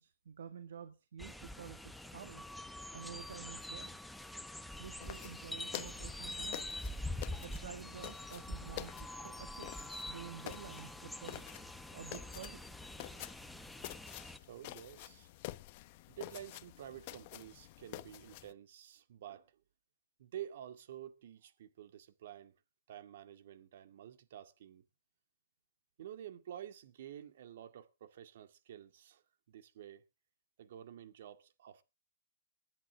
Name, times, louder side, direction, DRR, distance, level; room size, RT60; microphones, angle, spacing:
voice 1, 0.0-2.5 2.9-4.0 4.8-6.7 7.4-9.7 10.1-11.4 11.9-12.8, right 8 dB, 80° right, 1.8 m, -50 dB
sound 1, 1.2-14.4, left 1 dB, ahead, 0.9 m, -45 dB
sound 2, 5.0-18.5, left 17 dB, 45° left, 1.0 m, -49 dB
voice 2, 14.4-15.3 16.1-19.6 20.2-22.6 22.9-24.8 26.0-30.0 30.6-31.8, right 11 dB, 65° right, 2.2 m, -50 dB
19.5 x 10.5 x 3.7 m
hypercardioid pair, 145°, 0 cm